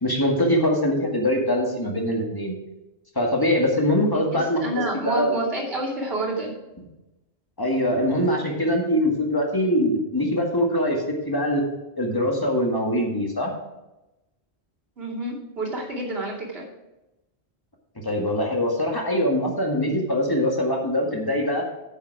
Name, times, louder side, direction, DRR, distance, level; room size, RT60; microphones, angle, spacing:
voice 1, 0.0-2.6 3.2-5.3 7.6-11.6 12.0-13.5 18.0-21.6, left 1 dB, 20° left, 0 dB, 1.9 m, -23 dB
voice 2, 4.1-6.5 15.0-16.6, right 2 dB, 65° right, -4 dB, 2.8 m, -29 dB
9.7 x 7.3 x 4.8 m, 0.98 s
omnidirectional pair, 1.1 m